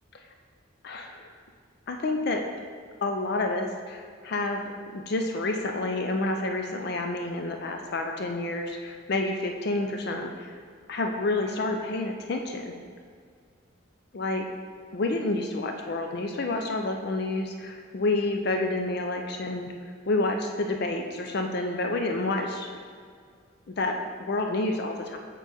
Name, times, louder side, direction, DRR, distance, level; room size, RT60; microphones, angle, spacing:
voice 1, 0.8-1.3 1.9-2.4 3.0-10.6 10.9-12.8 14.1-14.5 14.9-19.7 20.1-22.7 23.7-25.2, left 2 dB, 50° left, 3 dB, 0.4 m, -29 dB
7.3 x 3.9 x 4.0 m, 2.1 s
head